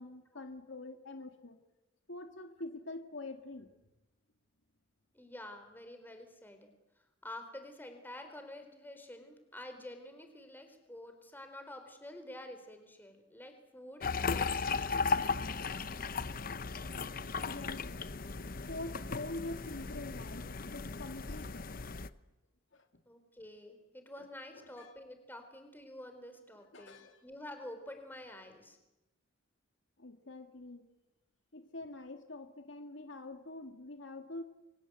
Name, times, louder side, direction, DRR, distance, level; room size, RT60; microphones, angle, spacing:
voice 1, 0.0-1.6 2.1-3.7 17.5-18.0 18.7-21.7 22.7-22.9 24.2-24.3 24.5-24.9 26.7-27.2 30.0-30.9 31.5-34.4, left 2 dB, 70° left, 7 dB, 2.1 m, -45 dB
voice 2, 5.1-6.7 7.2-14.9 23.1-28.8, left 1 dB, 10° left, 6 dB, 4.3 m, -49 dB
sound 1, 14.0-22.1, left 4 dB, 50° left, 0.9 m, -36 dB
29.5 x 24.0 x 8.1 m, 0.97 s
head